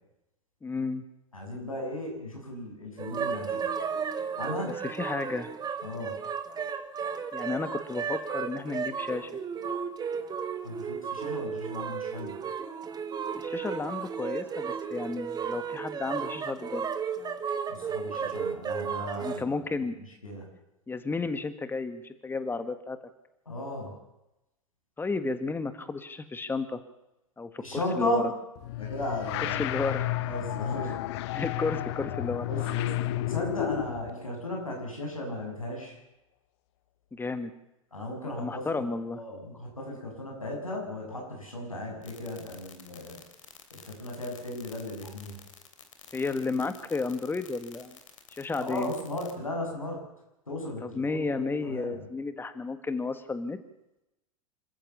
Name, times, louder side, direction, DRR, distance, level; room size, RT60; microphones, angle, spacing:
voice 1, 0.6-1.1 4.7-5.5 7.3-9.3 13.3-16.9 19.2-20.0 20.9-23.0 25.0-26.8 27.4-28.2 29.5-30.2 30.8-31.0 31.3-32.5 37.1-37.5 38.4-39.2 46.1-48.0 48.3-48.9 50.8-53.6, left 3 dB, 10° left, 10 dB, 1.8 m, -32 dB
voice 2, 1.3-3.8 4.4-4.8 5.8-6.1 10.6-12.3 17.7-20.4 23.5-23.9 27.6-28.3 28.8-29.7 30.2-31.0 32.5-32.9 33.3-36.0 37.9-43.2 43.7-45.4 48.5-50.0 50.5-52.1, left 1 dB, 85° left, 0 dB, 7.4 m, -36 dB
sound 1, 3.0-19.4, right 6 dB, 25° right, 1.8 m, -34 dB
sound 2, 28.6-34.1, left 15 dB, 55° left, 1.0 m, -32 dB
sound 3, 42.0-49.3, left 7 dB, 70° left, 3.2 m, -50 dB
27.0 x 14.5 x 7.3 m, 0.91 s
figure-of-eight pair, 85°, 17 cm